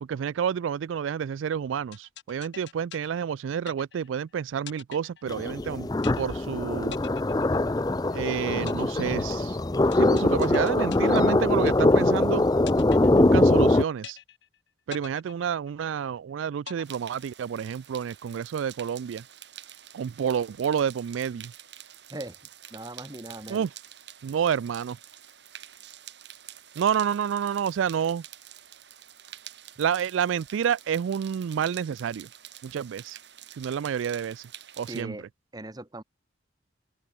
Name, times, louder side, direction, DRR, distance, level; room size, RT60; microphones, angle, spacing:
voice 1, 0.0-5.9 6.2-7.0 8.1-9.6 10.0-12.4 13.2-14.2 14.9-19.2 19.9-21.5 23.5-23.7 24.2-25.0 26.8-28.2 29.8-32.3 32.6-33.2 33.6-34.5 34.8-35.1, right 8 dB, 85° right, 0.3 m, -29 dB
sound 1, 1.9-4.2 4.7-5.7 6.0-6.6 6.9-8.2 8.7-12.2 12.7-13.7 14.0-14.6 14.9-16.2 16.7-17.7, left 7 dB, 65° left, 1.8 m, -44 dB
sound 2, 5.3-13.8, left 2 dB, 20° left, 0.5 m, -22 dB
sound 3, 16.8-35.0, right 11 dB, 60° right, 4.1 m, -48 dB
voice 2, 22.7-23.7 34.9-36.0, right 1 dB, 20° right, 1.1 m, -40 dB
open air
head